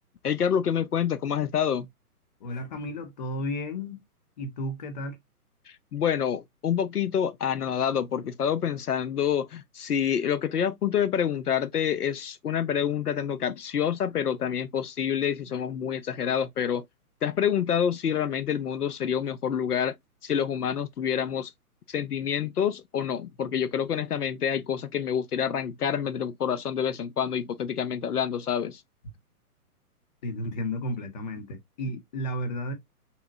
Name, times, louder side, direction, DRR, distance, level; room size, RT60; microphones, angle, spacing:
voice 1, 0.2-1.9 5.7-16.8 17.2-19.9 20.2-21.5 21.9-28.8, left 8 dB, 80° left, 0.5 m, -27 dB
voice 2, 2.4-4.0 4.4-5.2 30.2-32.7, left 1 dB, 30° left, 0.8 m, -33 dB
3.6 x 2.8 x 2.6 m
figure-of-eight pair, 125°, 46 cm